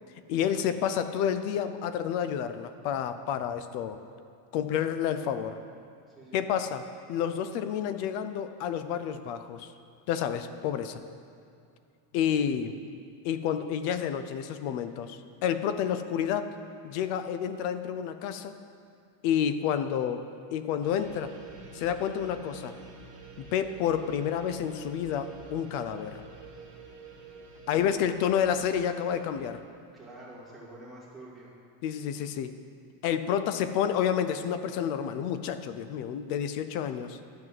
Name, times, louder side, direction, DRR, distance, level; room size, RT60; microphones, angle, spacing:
voice 1, 0.3-4.0 4.5-5.6 6.3-6.8 7.1-9.7 10.1-11.0 12.1-12.7 13.2-16.5 16.8-18.6 19.2-20.2 20.5-21.3 21.7-22.7 23.4-26.2 27.7-29.6 31.8-32.5 33.0-37.2, left 8 dB, 55° left, 11 dB, 0.6 m, -29 dB
voice 2, 6.1-6.4 27.7-27.9 29.9-31.5, right 2 dB, ahead, -9 dB, 2.3 m, -47 dB
sound 1, 20.8-29.6, right 4 dB, 35° right, 1.2 m, -48 dB
12.0 x 4.7 x 7.5 m, 2.5 s
cardioid pair, 175°, 50 cm